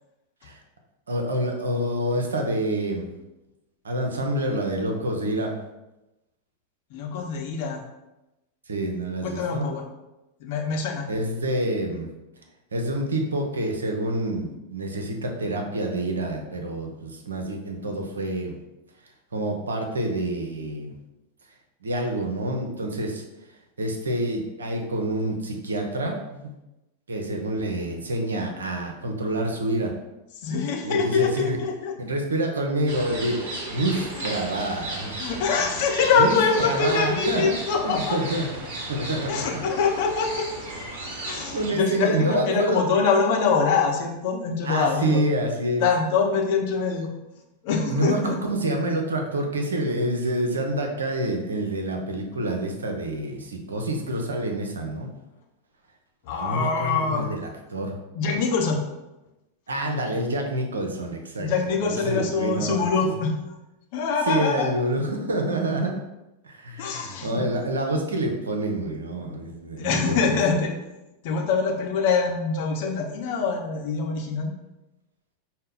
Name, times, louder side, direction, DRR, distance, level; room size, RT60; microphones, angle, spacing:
voice 1, 1.1-3.1 3.8-5.6 8.7-9.8 11.1-12.1 12.7-18.6 19.3-20.9 21.8-23.2 23.8-26.5 27.1-29.9 30.8-31.6 32.0-35.1 36.2-37.6 37.8-38.5 38.9-39.6 41.5-42.8 44.6-45.8 47.9-55.1 56.3-58.0 59.7-62.9 63.2-63.3 64.3-66.0 66.4-70.4, right 1 dB, 70° right, 3 dB, 0.6 m, -27 dB
voice 2, 6.9-7.8 9.2-9.8 10.4-11.1 30.4-32.0 34.2-34.3 35.2-38.2 39.3-40.7 41.2-45.2 45.8-47.1 47.6-48.4 56.2-57.3 58.1-58.8 61.4-63.6 63.9-64.7 66.8-67.4 69.8-70.7 71.2-74.5, left 5 dB, 50° left, 1 dB, 0.7 m, -24 dB
sound 1, 32.9-41.7, right 2 dB, 50° right, 1.2 m, -35 dB
5.3 x 2.2 x 3.7 m, 0.98 s
figure-of-eight pair, 90°, 0 cm